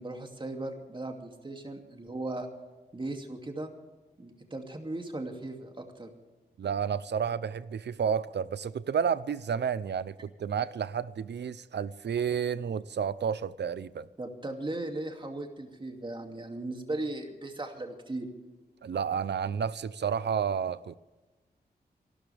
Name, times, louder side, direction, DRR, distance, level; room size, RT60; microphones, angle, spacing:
voice 1, 0.0-2.5 2.9-3.7 4.2-6.1 14.2-18.3, right 2 dB, 30° right, 2.6 m, -37 dB
voice 2, 6.6-14.1 18.8-21.0, right 7 dB, 80° right, 0.7 m, -31 dB
27.5 x 12.5 x 3.5 m
wide cardioid pair, 95°, 18 cm